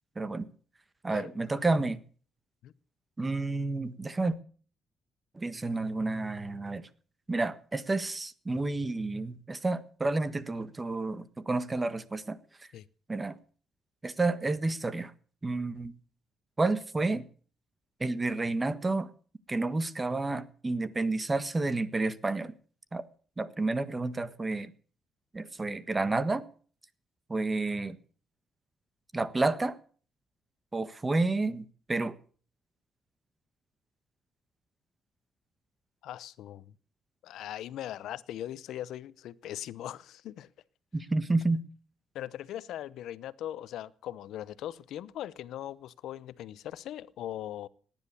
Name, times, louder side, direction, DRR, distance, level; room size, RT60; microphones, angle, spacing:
voice 1, 0.1-0.5 1.0-2.0 3.2-4.4 5.3-6.9 7.3-12.4 13.1-13.3 14.0-15.1 15.4-15.9 16.6-17.3 18.0-19.1 19.5-22.5 22.9-23.0 23.4-24.7 25.3-26.4 27.3-28.0 29.1-29.8 30.7-32.2 40.9-41.6, right 2 dB, 20° right, 1.4 m, -30 dB
voice 2, 1.1-1.4 2.6-2.7 12.7-12.8 36.0-36.7 37.2-40.5 42.1-47.7, left 12 dB, 80° left, 0.8 m, -40 dB
18.0 x 10.5 x 7.0 m
cardioid pair, 90°, 0 cm